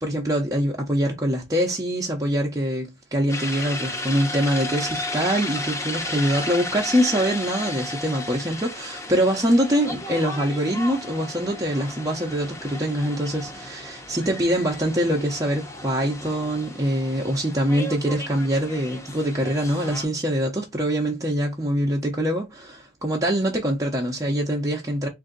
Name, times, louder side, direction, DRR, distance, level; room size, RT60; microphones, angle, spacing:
voice 1, 0.0-25.1, equal, 20° right, 0.7 m, -24 dB
sound 1, 3.3-20.1, left 2 dB, 15° left, 0.7 m, -34 dB
3.7 x 2.6 x 3.8 m
head